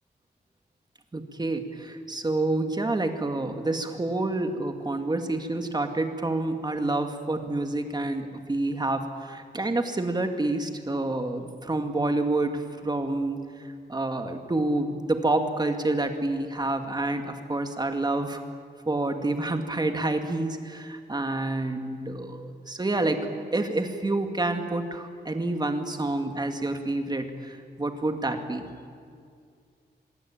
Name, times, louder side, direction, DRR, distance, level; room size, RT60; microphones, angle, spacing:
voice 1, 1.1-13.4 13.9-18.4 18.9-23.2 23.5-28.7, right 2 dB, 25° right, 6 dB, 2.1 m, -28 dB
25.0 x 22.5 x 8.8 m, 2.2 s
wide cardioid pair, 155°, 18 cm